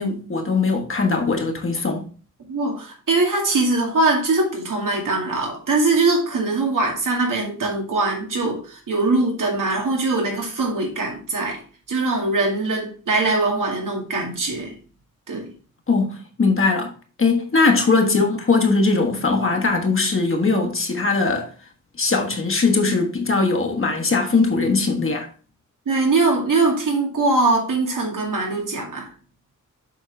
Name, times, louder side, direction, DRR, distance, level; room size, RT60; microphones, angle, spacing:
voice 1, 0.0-2.0 15.9-16.9 17.2-21.5 22.0-25.3, left 3 dB, 40° left, 1.3 m, -20 dB
voice 2, 2.5-11.6 11.9-14.7 15.3-15.5 18.1-18.2 25.9-29.1, right 3 dB, 85° right, 2.2 m, -22 dB
7.3 x 5.4 x 3.4 m
wide cardioid pair, 155°, 31 cm